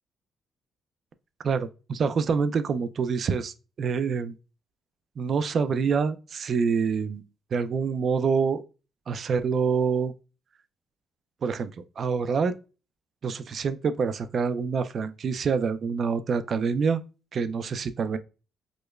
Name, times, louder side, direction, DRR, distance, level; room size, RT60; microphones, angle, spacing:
voice 1, 1.4-4.3 5.2-7.2 7.5-8.6 9.1-10.1 11.4-11.7 12.0-12.5 13.2-17.0 17.3-18.2, right 5 dB, 55° right, 0.4 m, -26 dB
5.0 x 2.1 x 2.3 m
cardioid pair, 90°, 0 cm